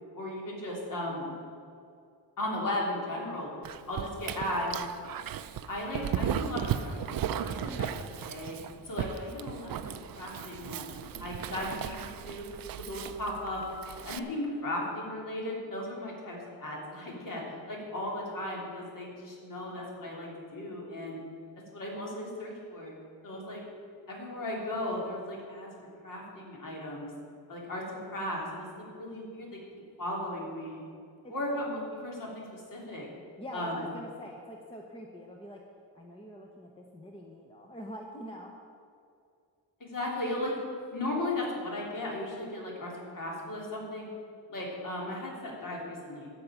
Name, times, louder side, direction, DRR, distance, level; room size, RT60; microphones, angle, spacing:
voice 1, 0.1-1.3 2.4-3.5 3.9-4.8 5.7-7.9 8.2-8.6 8.8-12.4 12.8-13.6 14.0-21.2 21.7-22.9 23.2-23.6 24.1-27.1 27.5-29.6 30.0-30.8 31.3-33.1 33.5-33.8 39.8-40.6 40.9-44.1 44.5-46.3, left 1 dB, 45° left, -3 dB, 3.1 m, -36 dB
Dog, 3.6-14.2, right 9 dB, 55° right, 0.5 m, -36 dB
voice 2, 7.6-7.9 31.2-31.6 33.4-35.6 35.9-38.5, equal, 15° left, 0 dB, 0.9 m, -44 dB
12.5 x 5.9 x 9.0 m, 2.4 s
wide cardioid pair, 175°, 43 cm